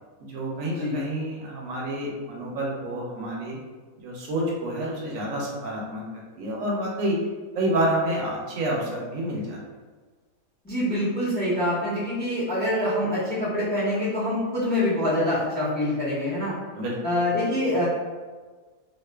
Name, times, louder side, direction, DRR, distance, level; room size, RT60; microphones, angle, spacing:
voice 1, 0.2-3.6 4.0-7.2 7.5-9.6 16.7-17.0, right 1 dB, 70° right, -3 dB, 0.9 m, -28 dB
voice 2, 10.6-16.6 17.0-17.8, left 1 dB, 10° left, -10 dB, 0.5 m, -25 dB
2.5 x 2.4 x 2.2 m, 1.4 s
omnidirectional pair, 1.5 m